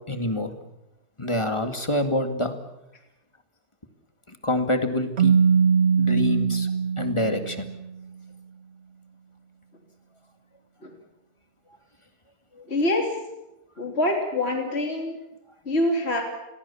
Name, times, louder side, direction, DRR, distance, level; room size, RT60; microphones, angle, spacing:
voice 1, 0.1-0.5 1.2-2.6 4.3-5.4 6.0-6.7 7.0-7.7 12.6-12.7, left 1 dB, 20° left, 7 dB, 2.2 m, -26 dB
Keyboard (musical), 5.2-7.9, right 6 dB, 45° right, 1.3 m, -21 dB
voice 2, 12.7-13.1 13.8-15.2 15.7-16.2, left 1 dB, 40° left, 3 dB, 3.4 m, -25 dB
29.5 x 22.0 x 7.2 m, 0.95 s
omnidirectional pair, 1.7 m